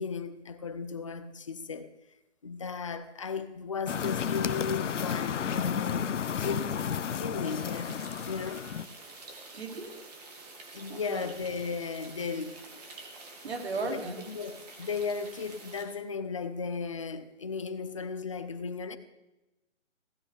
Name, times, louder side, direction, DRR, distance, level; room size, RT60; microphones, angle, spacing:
voice 1, 0.0-1.9 2.4-6.7 7.1-8.0 8.2-8.7 10.7-12.8 13.8-19.0, left 5 dB, 25° left, 0.6 m, -36 dB
sound 1, 3.9-8.9, left 8 dB, 75° left, 0.9 m, -32 dB
sound 2, 7.4-15.8, right 3 dB, 30° right, 2.5 m, -48 dB
voice 2, 9.5-10.0 10.9-11.3 13.4-14.3, right 3 dB, 60° right, 2.7 m, -36 dB
16.5 x 14.0 x 3.4 m
hypercardioid pair, 170°, 37 cm